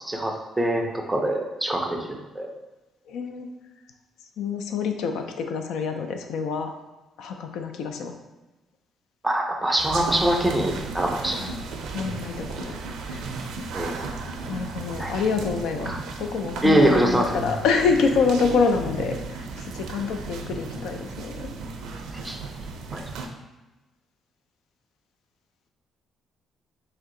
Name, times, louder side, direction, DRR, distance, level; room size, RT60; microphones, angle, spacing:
voice 1, 0.1-2.5 9.2-11.5 13.7-14.0 15.0-15.1 15.9-16.0 16.6-17.3 22.2-22.4 22.9-23.0, right 1 dB, 5° right, 1 dB, 0.4 m, -23 dB
voice 2, 3.1-3.5 4.4-6.7 7.2-8.1 11.4-11.7 11.9-12.8 13.0-13.2 13.5-13.7 14.5-15.9 16.2-21.5, left 5 dB, 85° left, 5 dB, 0.4 m, -26 dB
sound 1, 9.8-23.3, right 3 dB, 85° right, 0.4 m, -35 dB
3.3 x 2.7 x 3.7 m, 1.1 s
cardioid pair, 160°, 0 cm